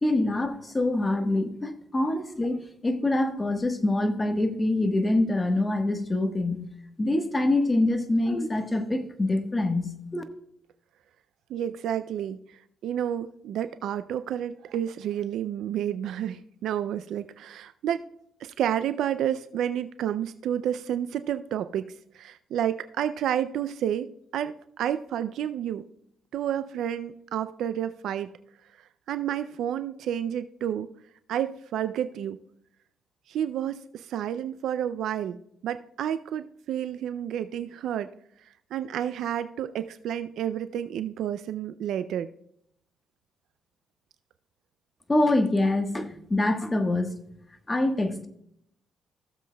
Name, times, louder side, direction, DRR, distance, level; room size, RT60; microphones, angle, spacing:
voice 1, 0.0-6.6 7.0-10.2 45.1-47.1 47.7-48.3, left 2 dB, 20° left, 6 dB, 1.2 m, -25 dB
voice 2, 11.5-18.0 18.4-25.9 26.3-28.3 29.1-30.9 31.3-32.4 33.3-38.1 38.7-42.3, right 10 dB, 75° right, 12 dB, 0.3 m, -30 dB
16.0 x 7.3 x 2.2 m, 0.72 s
cardioid pair, 90°, 0 cm